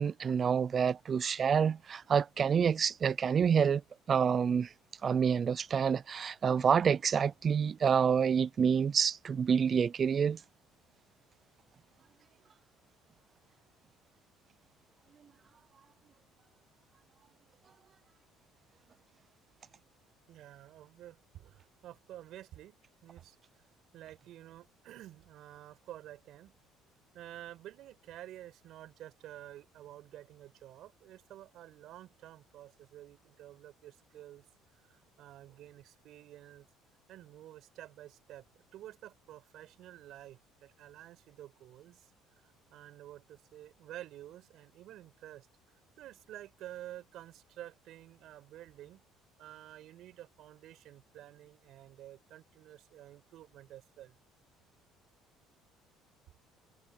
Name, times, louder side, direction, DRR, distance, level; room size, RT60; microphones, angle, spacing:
voice 1, 0.0-3.8 4.1-4.7 5.0-10.4, right 7 dB, 35° right, 0.6 m, -28 dB
voice 2, 20.3-22.8 23.0-23.4 23.9-26.5 27.1-34.5 34.9-36.7 37.1-42.1 42.4-45.5 46.0-49.0 49.4-54.2, right 13 dB, 65° right, 5.2 m, -50 dB
cardioid pair, 110°, 0 cm